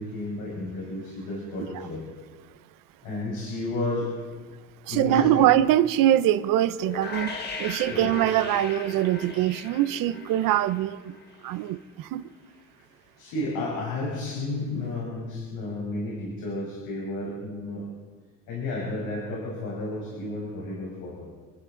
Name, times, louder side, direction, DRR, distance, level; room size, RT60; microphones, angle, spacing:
voice 1, 0.0-2.0 3.0-4.1 4.9-5.5 7.9-8.1 13.2-17.8 18.5-21.3, left 2 dB, 75° left, 5.7 m, -32 dB
voice 2, 4.9-11.2 11.4-12.3, right 13 dB, 70° right, 0.9 m, -23 dB
sound 1, 6.8-11.7, left 3 dB, 30° left, 1.8 m, -37 dB
29.5 x 11.0 x 3.9 m
cardioid pair, 165°, 34 cm